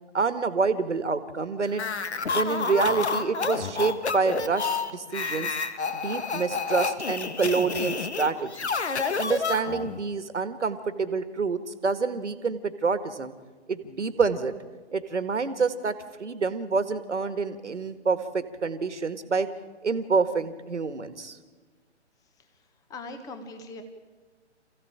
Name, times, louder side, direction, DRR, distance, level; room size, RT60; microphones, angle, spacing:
voice 1, 0.1-1.8 2.3-5.6 5.9-8.7 9.2-13.3 13.7-14.5 14.9-19.5 19.8-21.4, right 4 dB, 75° right, 11 dB, 1.9 m, -27 dB
sound 1, 1.7-10.0, left 4 dB, 65° left, 1.8 m, -29 dB
voice 2, 22.9-23.8, left 2 dB, 10° left, 8 dB, 1.4 m, -40 dB
28.0 x 15.5 x 8.9 m, 1.4 s
figure-of-eight pair, 140°, 36 cm